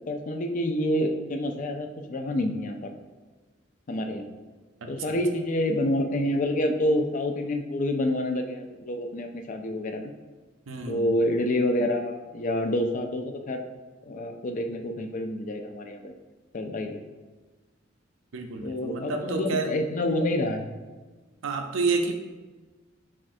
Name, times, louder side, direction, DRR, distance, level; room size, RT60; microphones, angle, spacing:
voice 1, 0.1-2.9 3.9-4.3 4.9-10.1 10.9-13.6 14.1-16.1 16.5-17.0 18.6-20.7, left 1 dB, 40° left, 5 dB, 0.4 m, -28 dB
voice 2, 4.8-5.2 10.7-11.1 18.3-19.7 21.4-22.2, right 3 dB, 85° right, 5 dB, 0.5 m, -29 dB
7.2 x 2.5 x 2.5 m, 1.3 s
head